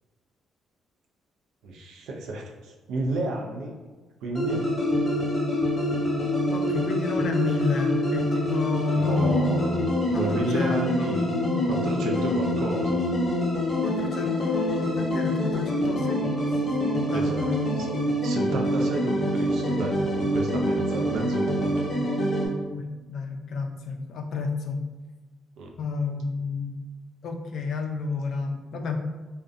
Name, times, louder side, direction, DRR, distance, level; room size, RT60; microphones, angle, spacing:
voice 1, 1.6-3.8 4.2-4.7 8.9-11.3 11.6-13.1 17.1-17.4 17.8-17.9 18.2-21.7 25.6-25.7, right 2 dB, 85° right, 1 dB, 0.4 m, -32 dB
sound 1, 4.3-22.5, left 1 dB, 40° left, 0.9 m, -26 dB
voice 2, 6.5-9.6 10.1-11.7 13.8-16.2 16.9-17.6 22.7-24.8 25.8-26.7 27.2-29.0, left 3 dB, 65° left, 4 dB, 0.3 m, -30 dB
2.5 x 2.1 x 2.5 m, 1.3 s
cardioid pair, 90°, 0 cm